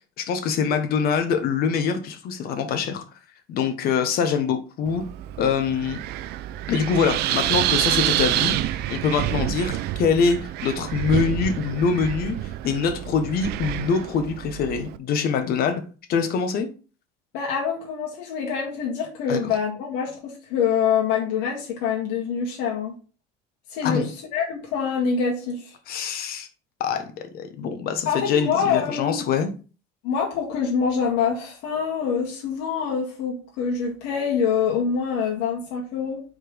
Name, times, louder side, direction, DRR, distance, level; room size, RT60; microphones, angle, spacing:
voice 1, 0.0-3.0 3.5-5.0 5.4-6.0 6.7-15.8 16.1-16.7 19.3-19.4 23.8-24.1 25.9-26.5 26.8-29.5, left 6 dB, 55° left, 1.3 m, -24 dB
Wind, 4.9-15.0, right 13 dB, 65° right, 0.5 m, -28 dB
voice 2, 17.3-22.9 23.7-25.7 28.1-29.2 30.0-36.2, left 6 dB, 80° left, 1.9 m, -25 dB
4.9 x 4.2 x 5.1 m
cardioid pair, 130°, 18 cm